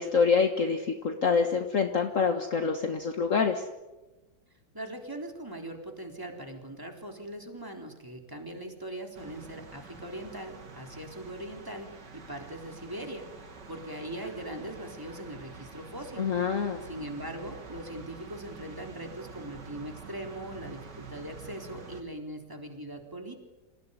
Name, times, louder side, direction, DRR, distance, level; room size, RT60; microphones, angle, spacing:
voice 1, 0.0-3.6 16.2-16.8, left 5 dB, 50° left, 5 dB, 1.8 m, -26 dB
voice 2, 4.7-11.9 12.1-16.3 16.8-23.4, right 1 dB, 10° right, 2 dB, 3.8 m, -40 dB
sound 1, 9.1-22.0, right 4 dB, 85° right, 3.0 m, -47 dB
27.5 x 17.5 x 9.9 m, 1.1 s
omnidirectional pair, 1.8 m